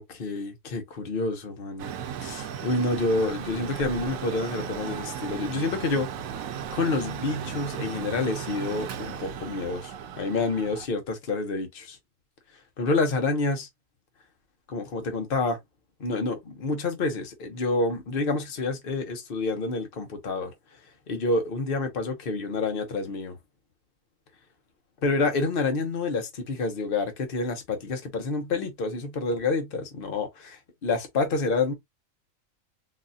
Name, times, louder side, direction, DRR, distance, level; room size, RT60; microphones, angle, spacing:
voice 1, 0.0-1.9 2.2-6.1 6.7-12.0 12.8-13.7 14.7-15.6 16.0-20.5 21.1-23.4 25.0-31.7, left 3 dB, 45° left, 1.0 m, -28 dB
Mechanical fan, 1.8-10.9, right 8 dB, 80° right, 1.0 m, -36 dB
4.1 x 2.4 x 2.6 m
omnidirectional pair, 1.4 m